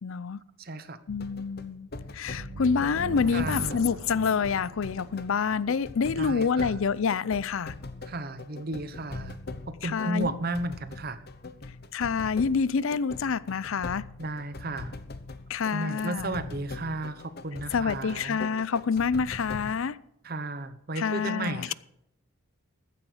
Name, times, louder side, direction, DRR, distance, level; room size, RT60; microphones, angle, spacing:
voice 1, 0.0-0.4 1.1-1.9 2.1-7.8 9.8-10.3 11.9-14.1 15.5-16.3 17.7-20.0 21.0-21.7, left 5 dB, 65° left, 0.5 m, -27 dB
voice 2, 0.6-1.0 3.3-3.8 6.2-6.8 8.1-9.4 9.7-11.2 14.2-14.9 15.7-18.4 20.2-21.7, right 2 dB, 45° right, 0.9 m, -34 dB
sound 1, 1.1-19.7, left 3 dB, 45° left, 0.8 m, -42 dB
sound 2, 2.4-5.9, right 3 dB, 85° right, 1.0 m, -40 dB
14.5 x 10.0 x 5.0 m
head